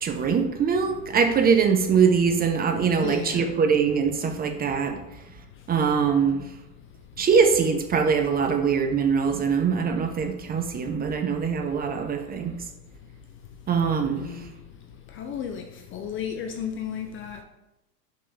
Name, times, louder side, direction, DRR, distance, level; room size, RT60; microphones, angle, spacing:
voice 1, 0.0-5.0 5.7-6.4 7.2-12.5 13.7-14.2, right 6 dB, 20° right, 0.7 m, -22 dB
voice 2, 3.0-3.5 8.9-9.0 14.1-14.5 15.1-17.4, left 8 dB, 25° left, 0.5 m, -34 dB
5.7 x 5.2 x 5.5 m
hypercardioid pair, 120°, 49 cm